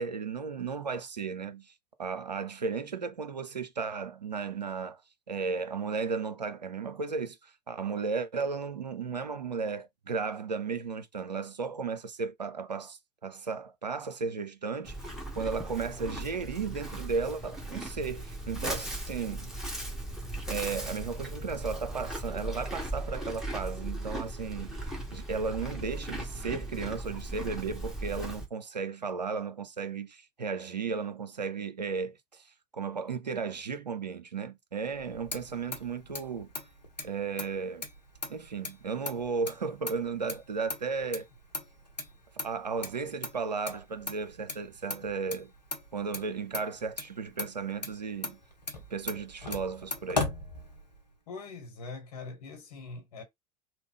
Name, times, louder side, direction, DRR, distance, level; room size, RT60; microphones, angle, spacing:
voice 1, 0.0-1.7 2.0-5.0 5.3-19.5 20.5-24.8 25.1-32.5 32.7-36.5 37.0-37.9 38.3-41.3 42.4-45.5 45.9-48.4 48.9-50.3, right 5 dB, 85° right, 0.5 m, -35 dB
Livestock farm animals working animals, 14.8-28.5, right 1 dB, ahead, 1.2 m, -38 dB
Motor vehicle (road), 34.9-51.2, left 3 dB, 85° left, 0.8 m, -40 dB
voice 2, 51.3-53.2, left 3 dB, 65° left, 1.4 m, -43 dB
3.1 x 2.2 x 3.5 m
figure-of-eight pair, 70°, 21 cm